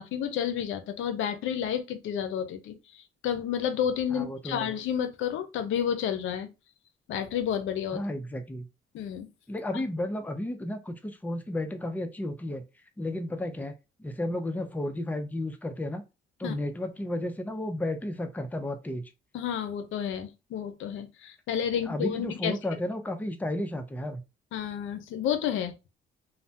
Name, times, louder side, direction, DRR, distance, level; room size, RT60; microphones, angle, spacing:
voice 1, 0.0-6.5 7.1-8.0 8.9-9.3 9.7-9.8 16.4-16.6 19.3-22.6 24.5-25.7, left 9 dB, 80° left, 0.5 m, -31 dB
voice 2, 4.1-4.7 7.9-8.7 9.5-12.6 13.0-13.7 14.0-16.0 16.4-19.1 21.9-24.2, left 1 dB, 10° left, 0.5 m, -33 dB
3.2 x 2.1 x 2.8 m
cardioid pair, 90°, 20 cm